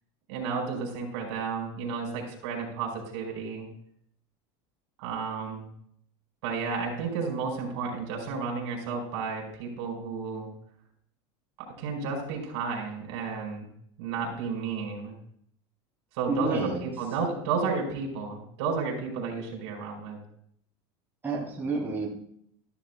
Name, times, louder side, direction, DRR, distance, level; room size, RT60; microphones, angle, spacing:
voice 1, 0.3-3.7 5.0-5.7 6.4-10.5 11.6-13.7 14.0-15.2 16.1-20.2, right 5 dB, 70° right, 0 dB, 4.4 m, -32 dB
voice 2, 16.3-16.8 21.2-22.1, right 2 dB, 15° right, -4 dB, 2.4 m, -29 dB
13.5 x 11.5 x 2.2 m, 0.68 s
supercardioid pair, 140°, 14 cm